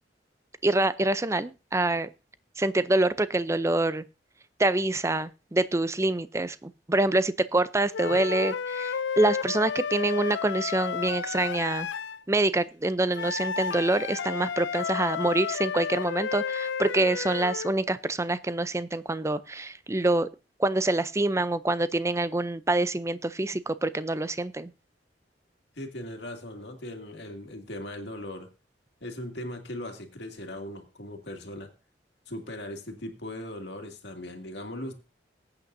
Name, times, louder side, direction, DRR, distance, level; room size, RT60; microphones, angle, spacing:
voice 1, 0.6-2.1 2.6-4.0 4.6-11.9 12.3-20.3 20.6-24.7, right 2 dB, 15° right, 15 dB, 0.5 m, -26 dB
sound 1, 7.9-12.2 13.1-17.8, left 6 dB, 90° left, 0.5 m, -32 dB
voice 2, 25.8-28.5 29.0-31.7 32.3-34.9, left 1 dB, 70° left, 5 dB, 2.3 m, -39 dB
21.0 x 8.8 x 2.6 m, 0.30 s
head